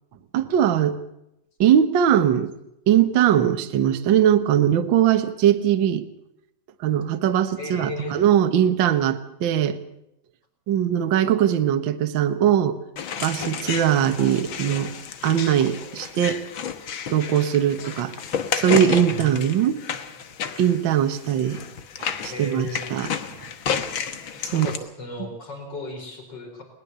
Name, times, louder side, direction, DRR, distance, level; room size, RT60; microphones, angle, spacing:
voice 1, 0.3-1.0 1.6-2.5 2.9-6.0 6.8-9.8 10.7-12.8 13.2-14.9 15.2-16.4 17.1-18.1 18.5-19.8 20.6-21.6 22.0-23.1 24.5-24.7, right 10 dB, 60° right, 9 dB, 1.2 m, -20 dB
voice 2, 7.6-8.2 19.1-19.5 22.3-22.8 24.5-26.6, left 1 dB, 30° left, 4 dB, 4.8 m, -34 dB
sound 1, 12.9-24.8, left 7 dB, 60° left, 1.3 m, -31 dB
21.0 x 19.5 x 6.9 m, 0.82 s
omnidirectional pair, 3.9 m